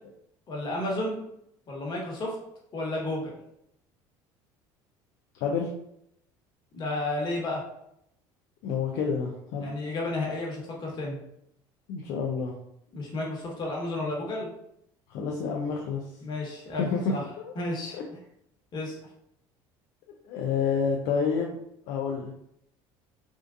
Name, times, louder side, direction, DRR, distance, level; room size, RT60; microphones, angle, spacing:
voice 1, 0.5-1.2 1.7-2.3 2.7-3.3 6.7-7.6 9.6-11.2 12.9-14.5 16.2-16.8 17.1-17.2 17.5-17.9 18.7-18.9, left 2 dB, 40° left, -2 dB, 1.3 m, -32 dB
voice 2, 8.6-9.7 11.9-12.5 15.1-16.0 16.8-17.2 17.9-18.0 20.2-21.6 21.9-22.3, left 5 dB, 70° left, 0 dB, 0.5 m, -28 dB
3.6 x 2.5 x 2.5 m, 0.77 s
supercardioid pair, 95°, 11 cm